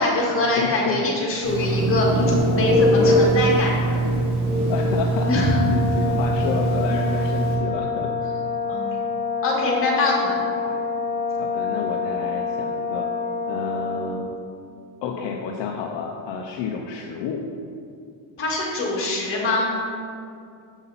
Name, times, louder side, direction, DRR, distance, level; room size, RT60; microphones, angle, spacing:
voice 1, 0.0-2.2 2.5-4.0 5.3-5.6 8.7-8.8 9.4-10.3 18.4-19.7, left 2 dB, 25° left, -4 dB, 1.7 m, -23 dB
voice 2, 0.6-1.0 4.7-5.3 5.7-8.1 10.7-10.8 11.4-13.1 13.5-14.3 15.0-17.4, left 6 dB, 60° left, 1 dB, 0.7 m, -30 dB
Telephone, 1.4-7.6, right 1 dB, 75° right, 1.6 m, -21 dB
Brass instrument, 5.2-14.1, left 5 dB, 20° right, 1.7 m, -27 dB
8.0 x 5.5 x 4.1 m, 2.4 s
cardioid pair, 155°, 49 cm